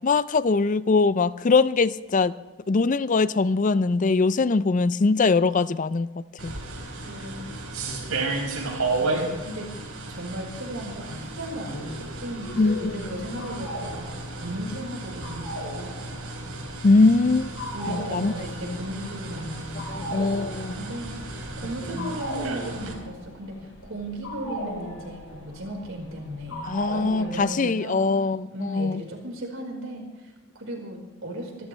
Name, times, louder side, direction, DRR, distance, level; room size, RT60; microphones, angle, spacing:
voice 1, 0.0-2.3 2.7-6.1 6.4-6.6 12.6-12.9 16.8-17.5 17.9-18.3 18.7-18.8 19.9-20.8 22.0-22.1 26.6-29.0, left 3 dB, 35° left, 17 dB, 0.4 m, -22 dB
sound 1, 6.4-22.9, right 2 dB, 85° right, 4.2 m, -34 dB
voice 2, 7.0-7.6 9.0-9.7 10.1-14.1 14.4-15.9 17.7-20.3 20.8-28.1 28.5-31.7, right 1 dB, 65° right, 1 dB, 4.6 m, -36 dB
sound 2, 11.7-27.4, equal, 85° left, 3.8 m, -39 dB
27.0 x 13.5 x 3.3 m, 1.2 s
head